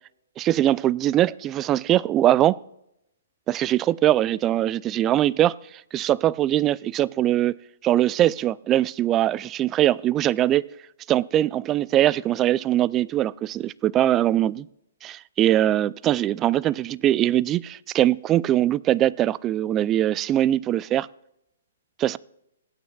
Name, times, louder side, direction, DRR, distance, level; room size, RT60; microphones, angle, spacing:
voice 1, 0.4-2.6 3.5-5.6 5.9-7.5 7.8-10.7 11.1-14.7 15.0-21.1 22.0-22.2, right 12 dB, 25° right, 0.3 m, -22 dB
22.5 x 9.3 x 2.3 m
figure-of-eight pair, 130°, 0 cm